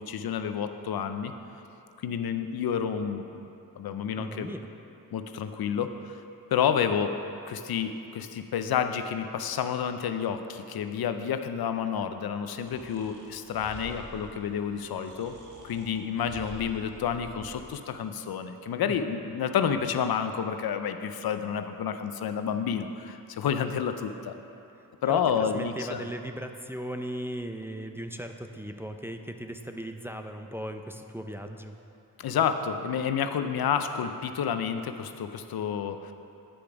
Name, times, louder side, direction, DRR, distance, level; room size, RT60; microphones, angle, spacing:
voice 1, 0.0-1.3 2.0-3.2 3.8-4.5 5.1-6.1 6.5-7.2 7.5-15.4 15.6-24.3 25.0-26.1 32.2-36.1, left 7 dB, 80° left, 8 dB, 0.5 m, -29 dB
voice 2, 4.1-4.7 18.9-19.0 25.1-31.7, right 1 dB, 5° right, 5 dB, 0.4 m, -37 dB
Breathing, 12.6-17.8, right 1 dB, 55° right, 1.4 m, -48 dB
8.8 x 5.0 x 5.9 m, 2.8 s
cardioid pair, 60°, 36 cm